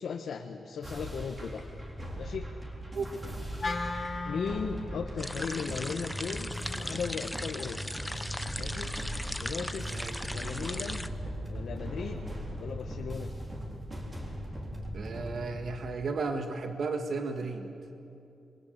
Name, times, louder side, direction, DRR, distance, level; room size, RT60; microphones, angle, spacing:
voice 1, 0.0-1.6 2.2-2.5 4.2-7.8 8.6-8.9 9.4-9.9 10.3-11.1 11.5-12.2 12.6-13.3, left 6 dB, 65° left, 3 dB, 1.3 m, -37 dB
sound 1, 0.8-15.5, equal, 20° right, 3.8 m, -39 dB
Wind instrument woodwind instrument, 3.6-7.9, left 3 dB, 25° left, 1.5 m, -39 dB
sound 2, 5.2-11.1, left 1 dB, 5° left, 0.8 m, -38 dB
voice 2, 14.9-17.7, right 4 dB, 60° right, 5 dB, 1.7 m, -34 dB
28.0 x 23.0 x 8.1 m, 2.7 s
wide cardioid pair, 145°, 0 cm